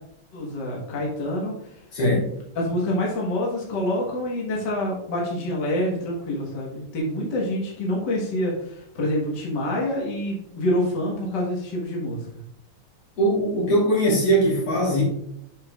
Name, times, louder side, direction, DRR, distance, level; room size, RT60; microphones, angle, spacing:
voice 1, 0.3-1.7 2.6-12.3, left 1 dB, 55° left, -3 dB, 1.9 m, -27 dB
voice 2, 1.9-2.3 13.2-15.0, right 1 dB, 80° left, -4 dB, 3.9 m, -20 dB
8.1 x 5.5 x 2.4 m, 0.74 s
omnidirectional pair, 2.4 m